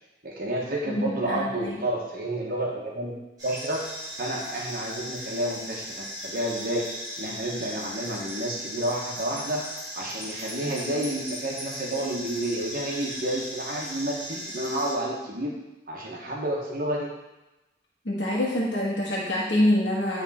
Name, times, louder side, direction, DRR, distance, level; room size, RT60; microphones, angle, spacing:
voice 1, 0.2-3.1 3.4-3.9 4.2-6.9 7.2-9.7 9.9-15.6 15.9-17.1, right 1 dB, 50° right, -2 dB, 1.2 m, -30 dB
voice 2, 1.0-1.7 18.0-20.2, left 1 dB, 85° left, -5 dB, 1.3 m, -25 dB
sound 1, 3.4-14.9, equal, 20° right, 2.4 m, -37 dB
9.4 x 3.5 x 4.2 m, 1.0 s
head